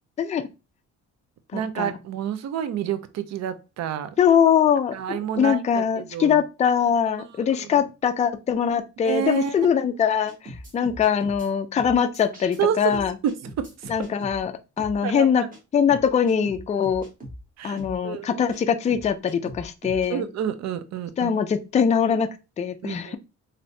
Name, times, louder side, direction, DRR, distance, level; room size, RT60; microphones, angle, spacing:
voice 1, 0.2-0.5 1.5-2.0 4.2-13.1 13.9-15.5 15.7-17.1 17.6-20.3 21.2-22.3 22.6-23.2, left 7 dB, 25° left, 0.3 m, -22 dB
voice 2, 1.5-4.1 4.9-6.4 7.6-7.8 9.0-9.6 12.6-13.9 15.0-15.5 17.6-17.8 18.0-18.4 20.1-21.3 22.8-23.2, right 9 dB, 60° right, 0.5 m, -29 dB
sound 1, 10.3-11.5 11.8-12.6 12.9-14.4 14.8-15.0 15.5-15.6 15.9-17.4 17.8-18.0 18.5-18.6 18.9-20.1, equal, 25° right, 1.2 m, -40 dB
3.2 x 2.7 x 2.6 m
cardioid pair, 90°, 30 cm